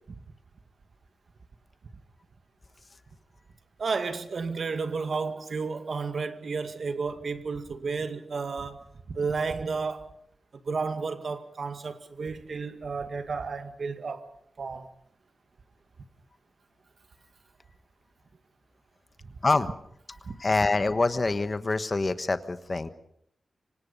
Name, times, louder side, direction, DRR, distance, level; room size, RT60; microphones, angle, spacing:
voice 1, 3.8-10.1 10.7-14.3 14.6-14.9 20.3-20.4, right 4 dB, 55° right, 2.0 m, -32 dB
voice 2, 20.4-22.9, left 3 dB, 30° left, 1.2 m, -25 dB
26.0 x 25.0 x 5.4 m
wide cardioid pair, 150°, 0 cm